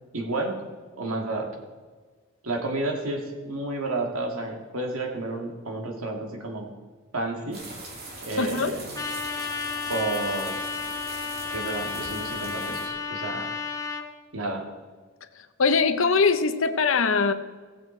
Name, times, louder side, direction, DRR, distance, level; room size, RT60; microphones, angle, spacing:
voice 1, 0.1-0.6 1.0-1.5 2.4-6.7 7.1-7.6 8.2-9.0 9.9-10.6 11.5-13.5 14.3-14.6, right 2 dB, 80° right, 2 dB, 1.9 m, -31 dB
sound 1, 7.5-12.9, right 2 dB, 45° right, 2.3 m, -41 dB
voice 2, 8.4-8.7 15.6-17.3, left 4 dB, 65° left, 9 dB, 0.7 m, -21 dB
Trumpet, 8.9-14.0, left 5 dB, 15° left, 0.9 m, -32 dB
15.0 x 7.9 x 4.4 m, 1.4 s
head